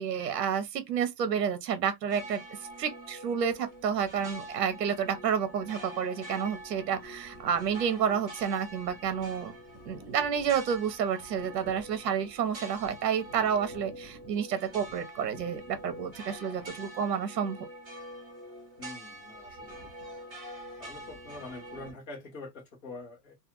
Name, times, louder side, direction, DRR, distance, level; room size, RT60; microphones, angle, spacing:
voice 1, 0.0-2.4 2.8-9.5 9.8-17.6, right 7 dB, 80° right, 0.8 m, -30 dB
sound 1, 2.1-21.9, right 1 dB, 10° right, 0.8 m, -45 dB
voice 2, 18.8-20.2 20.8-23.3, left 2 dB, 20° left, 0.8 m, -45 dB
2.4 x 2.3 x 2.8 m
supercardioid pair, 175°, 49 cm